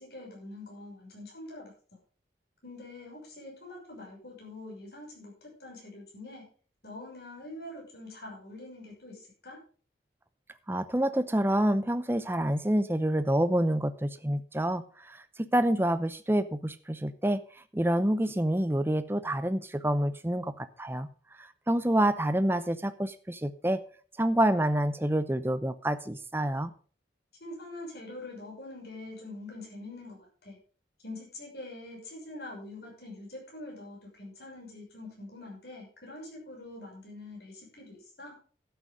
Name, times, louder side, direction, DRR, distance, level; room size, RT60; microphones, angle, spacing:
voice 1, 0.0-1.7 2.6-6.5 6.8-9.6 27.4-30.6 31.0-38.4, left 2 dB, 65° left, -1 dB, 6.2 m, -44 dB
voice 2, 10.7-17.4 17.7-21.1 21.4-23.8 24.2-26.7, right 1 dB, 15° right, 12 dB, 0.6 m, -27 dB
12.0 x 8.0 x 5.3 m, 0.41 s
head